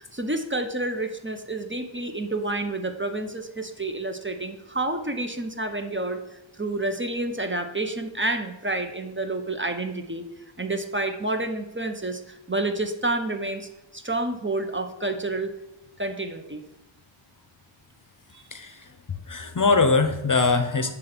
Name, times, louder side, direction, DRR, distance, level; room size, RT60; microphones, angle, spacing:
voice 1, 0.0-6.2 6.6-10.2 10.6-15.5 16.0-16.6 18.3-18.4, right 2 dB, 25° right, 6 dB, 0.8 m, -29 dB
voice 2, 19.3-20.9, left 4 dB, 40° left, 8 dB, 0.7 m, -21 dB
8.5 x 3.8 x 5.9 m, 0.92 s
wide cardioid pair, 50°, 48 cm